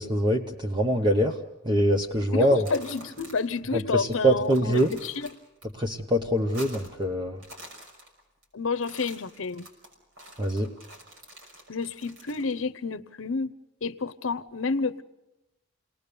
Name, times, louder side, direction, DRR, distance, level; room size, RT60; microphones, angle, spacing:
voice 1, 0.0-1.4 1.6-2.6 3.7-4.9 5.8-7.4 10.4-10.7, equal, 25° right, 3 dB, 1.0 m, -24 dB
voice 2, 2.3-5.3 8.5-9.7 11.7-13.5 13.8-15.0, left 4 dB, 75° left, 14 dB, 0.8 m, -30 dB
sound 1, 2.4-3.6 3.9-4.0 4.3-5.6 6.0-7.0 7.3-8.4 8.7-12.5, right 1 dB, 80° right, 6.0 m, -47 dB
29.5 x 19.5 x 6.9 m, 0.99 s
head